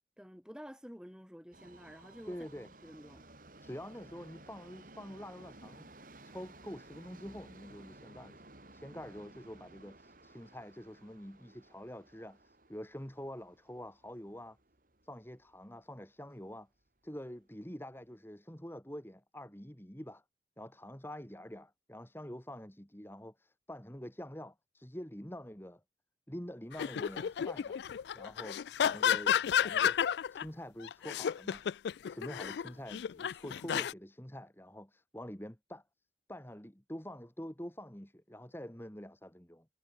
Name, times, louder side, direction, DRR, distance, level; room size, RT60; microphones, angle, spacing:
voice 1, 0.2-3.2, equal, 5° right, 7.4 m, -51 dB
Subway metro underground, 1.5-15.6 15.9-16.0 16.9-17.0 17.3-17.4 18.0-18.1, right 2 dB, 50° right, 3.4 m, -56 dB
voice 2, 2.3-2.7 3.6-5.9 6.2-8.4 8.7-14.6 15.0-16.7 17.0-20.2 20.6-25.8 26.3-27.8 28.1-31.6 32.1-35.8 36.3-39.7, equal, 15° left, 2.5 m, -46 dB
sound 1, 26.7-30.4 30.8-33.9, left 8 dB, 70° left, 0.3 m, -32 dB
head